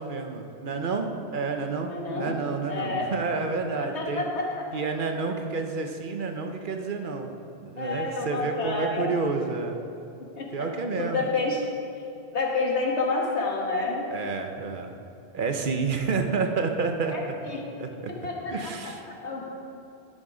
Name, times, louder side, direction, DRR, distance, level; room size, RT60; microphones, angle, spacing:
voice 1, 0.0-4.2 4.7-7.3 7.6-9.8 10.5-11.3 14.1-14.9 15.3-17.4 17.8-18.1 18.5-19.1, right 4 dB, 55° right, 4 dB, 0.9 m, -29 dB
voice 2, 1.9-2.4 2.7-3.1 3.8-4.6 7.8-9.1 10.2-10.7 11.0-11.6 12.3-14.0 17.1-17.6 18.2-18.7 19.2-19.4, left 3 dB, 80° left, -1 dB, 1.7 m, -29 dB
11.0 x 6.6 x 4.9 m, 2.8 s
omnidirectional pair, 1.1 m